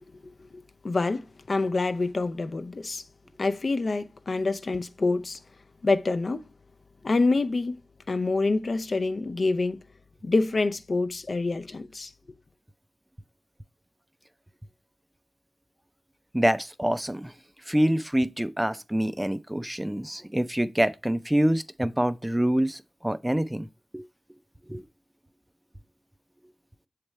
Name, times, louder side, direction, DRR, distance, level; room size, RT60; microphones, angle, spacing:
voice 1, 0.8-3.0 3.4-5.4 5.8-6.4 7.0-7.8 8.1-9.8 10.2-12.1, left 3 dB, 60° left, 0.4 m, -26 dB
voice 2, 16.3-17.3 17.7-23.7 23.9-24.0 24.7-24.8, right 1 dB, 10° right, 0.4 m, -26 dB
7.0 x 3.4 x 4.2 m
cardioid pair, 40°, 0 cm